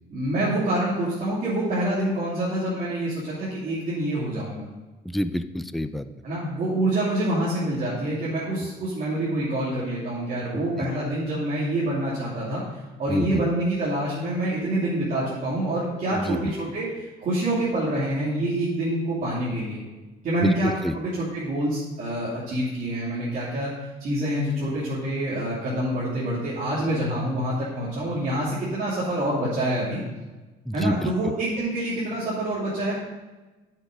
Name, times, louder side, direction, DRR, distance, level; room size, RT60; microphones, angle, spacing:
voice 1, 0.1-4.7 6.2-19.8 20.2-23.7 24.0-30.0 30.7-32.9, right 1 dB, 50° right, -8 dB, 2.9 m, -26 dB
voice 2, 5.1-6.1 10.5-10.6 13.1-13.4 16.1-16.4 20.4-20.5 20.8-20.9 30.7-31.1, equal, ahead, 10 dB, 0.4 m, -27 dB
9.8 x 6.6 x 5.0 m, 1.2 s
cardioid pair, 110°, 17 cm